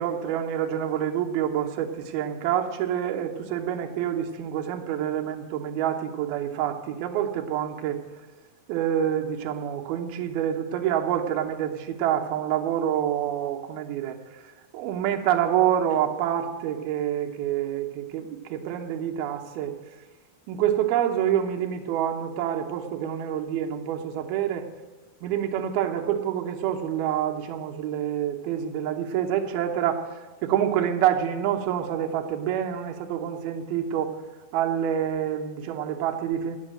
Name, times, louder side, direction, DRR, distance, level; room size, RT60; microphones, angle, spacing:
voice 1, 0.0-8.0 8.7-14.2 14.7-19.8 20.5-24.6 25.2-30.0 30.4-34.1 34.5-36.6, right 10 dB, 80° right, 3 dB, 2.8 m, -27 dB
10.0 x 8.1 x 7.6 m, 1.3 s
omnidirectional pair, 4.4 m